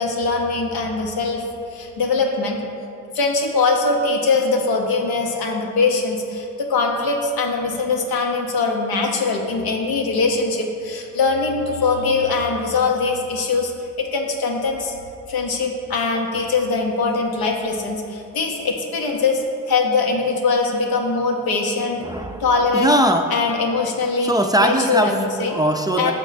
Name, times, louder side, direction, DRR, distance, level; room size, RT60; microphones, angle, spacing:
voice 1, 0.0-1.4 1.7-2.6 3.1-13.7 14.0-14.9 15.3-22.0 22.4-22.9 23.3-24.3 24.6-25.5 26.0-26.1, left 4 dB, 85° left, 1 dB, 0.8 m, -22 dB
voice 2, 21.7-22.5 22.7-23.3 24.2-25.2 25.5-26.1, right 1 dB, 10° right, 4 dB, 0.4 m, -20 dB
6.0 x 4.0 x 4.0 m, 2.5 s
supercardioid pair, 40°, 36 cm